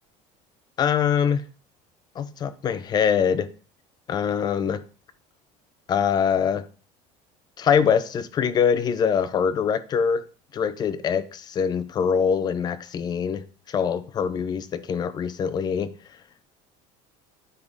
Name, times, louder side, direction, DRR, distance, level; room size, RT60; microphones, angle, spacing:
voice 1, 0.8-1.4 2.2-3.5 4.1-4.8 5.9-6.6 7.6-10.2 10.5-13.4 13.7-15.9, left 7 dB, 25° left, 0.5 m, -23 dB
9.1 x 3.6 x 3.9 m
cardioid pair, 160°, 15 cm